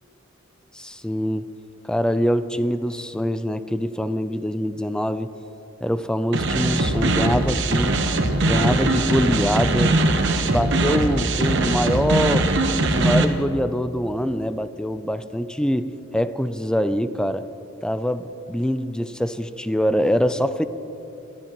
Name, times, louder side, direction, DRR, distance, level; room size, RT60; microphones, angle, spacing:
voice 1, 0.7-1.5 1.9-5.3 5.8-8.0 8.5-10.0 10.5-12.5 12.8-17.5 17.8-20.7, equal, 5° left, 12 dB, 0.4 m, -24 dB
sound 1, 6.3-13.2, right 2 dB, 60° right, 1.0 m, -21 dB
23.5 x 12.5 x 3.0 m, 3.0 s
head